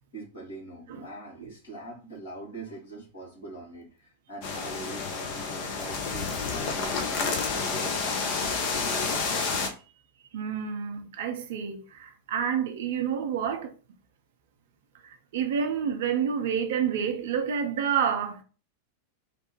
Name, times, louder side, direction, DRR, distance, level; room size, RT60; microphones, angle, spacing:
voice 1, 0.1-9.2, right 2 dB, 65° left, 1.5 m, -43 dB
sound 1, 4.4-9.7, left 4 dB, 45° left, 0.6 m, -29 dB
voice 2, 10.3-13.7 15.0-18.4, right 7 dB, 55° right, 0.5 m, -29 dB
3.2 x 2.1 x 3.0 m
figure-of-eight pair, 90°, 0 cm